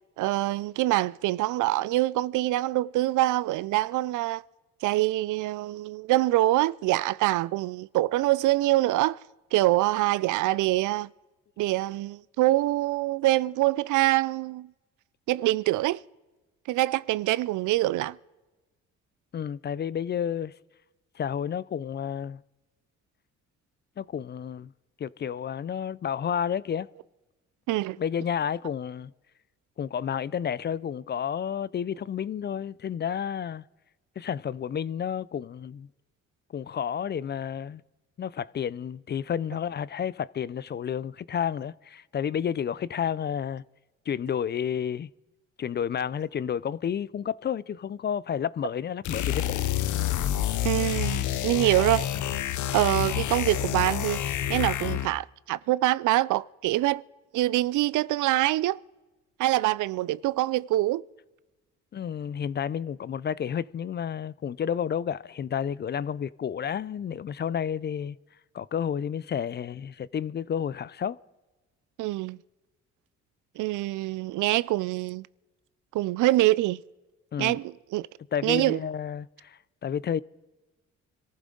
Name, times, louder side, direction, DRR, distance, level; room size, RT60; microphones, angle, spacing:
voice 1, 0.2-4.4 4.8-9.2 9.5-11.1 11.6-14.7 15.3-16.0 16.7-18.2 27.7-28.0 50.6-52.1 52.7-57.0 57.3-58.8 59.4-61.0 72.0-72.4 73.6-75.3 75.9-76.8 77.4-78.1 78.4-78.8, right 17 dB, 80° right, 0.5 m, -25 dB
voice 2, 19.3-20.5 21.2-22.4 24.0-24.7 25.0-26.9 28.0-29.1 29.8-33.6 34.2-35.9 36.5-37.8 38.2-43.6 44.1-45.1 45.6-49.6 61.9-68.2 68.5-71.2 77.3-77.6 78.3-80.2, left 8 dB, 35° left, 0.4 m, -31 dB
sound 1, 49.0-55.2, left 12 dB, 75° left, 0.8 m, -28 dB
26.0 x 14.5 x 3.8 m
cardioid pair, 90°, 30 cm